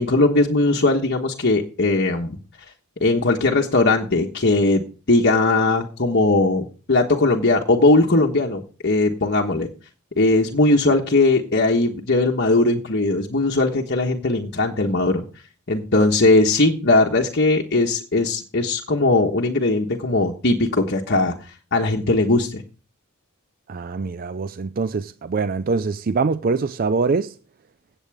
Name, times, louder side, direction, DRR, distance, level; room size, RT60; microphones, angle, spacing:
voice 1, 0.0-2.4 3.0-9.7 10.2-15.3 15.7-22.6, left 2 dB, 50° left, 1.3 m, -19 dB
voice 2, 23.7-27.3, right 4 dB, 40° right, 0.4 m, -23 dB
16.5 x 8.2 x 3.5 m
head